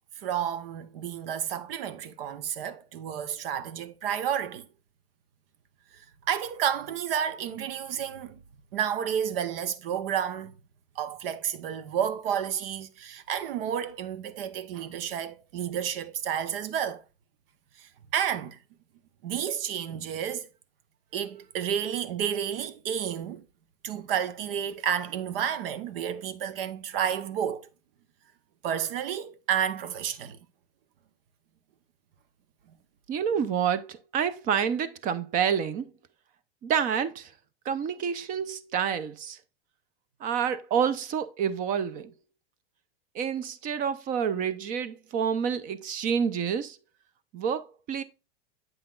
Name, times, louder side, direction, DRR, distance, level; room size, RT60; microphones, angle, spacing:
voice 1, 0.2-4.6 6.3-8.4 8.7-10.6 11.0-17.0 17.8-18.6 19.2-20.5 21.1-23.4 23.8-27.7 28.6-30.4, right 9 dB, 70° right, 0.8 m, -31 dB
voice 2, 33.1-35.9 36.6-37.3 37.6-39.4 40.2-42.1 43.1-46.8 47.3-48.0, right 7 dB, 30° right, 0.5 m, -28 dB
7.9 x 5.6 x 2.4 m
supercardioid pair, 140°, 30 cm